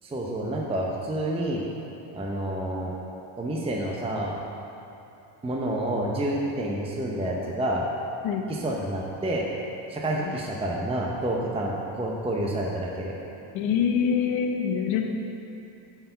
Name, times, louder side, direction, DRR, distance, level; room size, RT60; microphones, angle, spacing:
voice 1, 0.0-1.6 2.1-2.9 3.4-4.3 5.4-7.8 8.5-9.5 9.9-13.2, right 1 dB, 10° right, -2 dB, 0.7 m, -29 dB
voice 2, 13.5-15.0, left 7 dB, 70° left, 3 dB, 0.9 m, -25 dB
7.4 x 4.7 x 5.6 m, 2.9 s
cardioid pair, 110°, 50 cm